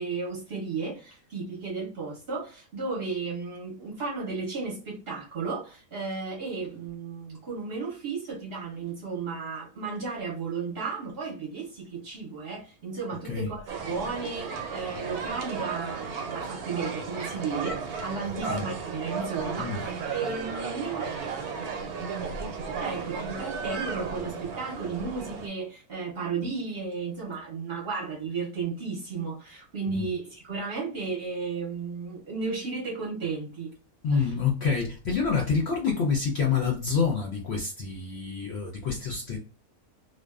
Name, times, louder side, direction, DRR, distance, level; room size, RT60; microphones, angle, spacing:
voice 1, 0.0-21.0 22.8-33.7 34.1-34.3, right 4 dB, 50° right, 0.8 m, -34 dB
sound 1, 13.7-25.5, right 5 dB, 90° right, 1.1 m, -34 dB
voice 2, 34.0-39.4, left 5 dB, 65° left, 0.7 m, -27 dB
2.4 x 2.2 x 2.3 m
omnidirectional pair, 1.6 m